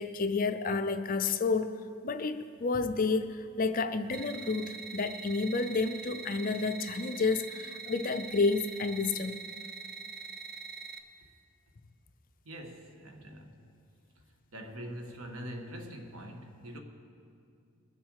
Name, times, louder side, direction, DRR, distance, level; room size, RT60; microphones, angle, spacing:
voice 1, 0.0-1.7 2.0-9.3, left 4 dB, 40° left, 10 dB, 0.5 m, -30 dB
sound 1, 4.1-11.0, right 5 dB, 45° right, 0.7 m, -43 dB
voice 2, 12.4-13.6 14.5-16.8, equal, 70° right, 3 dB, 1.6 m, -43 dB
22.5 x 7.6 x 4.8 m, 2.3 s
head